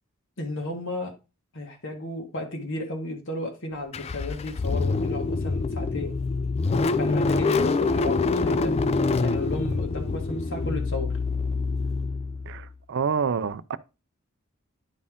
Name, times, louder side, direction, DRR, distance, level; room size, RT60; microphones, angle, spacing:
voice 1, 0.4-1.1 1.5-6.2 7.0-8.8 9.2-11.2, left 2 dB, 60° left, 1.6 m, -33 dB
Car / Engine starting, 3.9-12.7, left 3 dB, 30° left, 0.3 m, -26 dB
voice 2, 12.5-13.8, right 6 dB, 55° right, 0.4 m, -27 dB
9.8 x 4.3 x 3.6 m
head